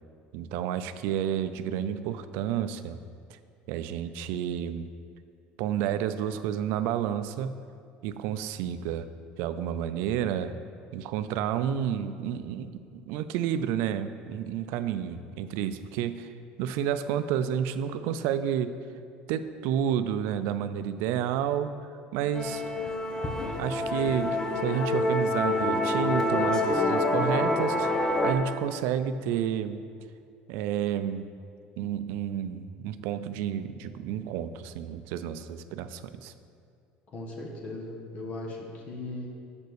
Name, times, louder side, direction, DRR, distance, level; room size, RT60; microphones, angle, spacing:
voice 1, 0.3-3.0 3.3-3.4 3.7-4.9 5.6-7.5 8.0-9.1 9.4-10.6 10.9-16.3 16.6-18.8 19.3-21.7 22.1-22.6 23.6-29.8 30.5-31.2 31.8-36.3, right 9 dB, 75° right, 11 dB, 0.4 m, -30 dB
Musical instrument, 22.3-28.3, left 2 dB, 20° left, 0.7 m, -27 dB
voice 2, 37.1-39.3, left 2 dB, 40° left, 0 dB, 1.3 m, -38 dB
6.7 x 5.3 x 6.5 m, 2.3 s
cardioid pair, 135°, 4 cm